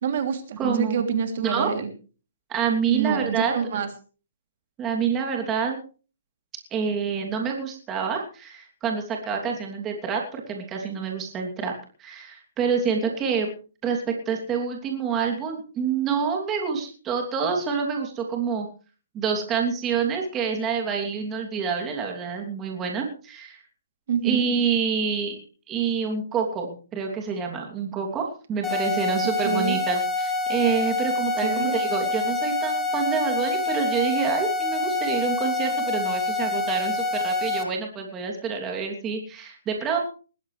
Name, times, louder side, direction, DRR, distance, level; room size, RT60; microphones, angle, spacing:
voice 1, 0.0-1.9 2.9-3.9 24.1-24.4 29.4-29.8 31.4-31.8, right 7 dB, 50° right, 6 dB, 3.0 m, -26 dB
voice 2, 0.6-1.0 1.4-1.7 2.5-3.5 4.8-5.8 6.7-11.7 12.0-13.5 13.8-18.7 19.1-23.6 24.2-25.4 25.7-40.0, right 6 dB, 15° right, 2 dB, 3.0 m, -27 dB
sound 1, 28.6-37.6, left 3 dB, 5° left, 2.3 m, -26 dB
20.5 x 15.5 x 3.4 m, 0.37 s
hypercardioid pair, 160°, 0 cm